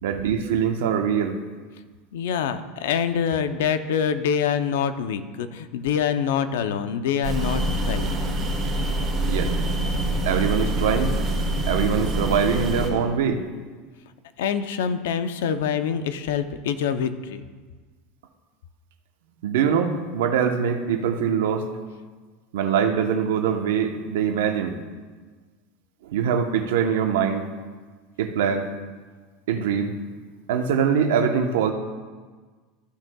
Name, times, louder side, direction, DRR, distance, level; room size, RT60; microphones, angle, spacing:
voice 1, 0.0-1.4 9.3-9.5 10.3-11.1 11.7-13.4 19.4-21.7 22.5-24.7 26.0-27.5 28.2-28.7 29.5-30.0 30.5-31.7, right 7 dB, 90° right, 5 dB, 0.9 m, -23 dB
voice 2, 2.1-8.2 14.4-17.4, left 7 dB, 85° left, 10 dB, 0.6 m, -25 dB
sound 1, 7.2-12.9, right 1 dB, 25° right, 2.0 m, -25 dB
14.5 x 6.3 x 2.3 m, 1.4 s
supercardioid pair, 150°, 0 cm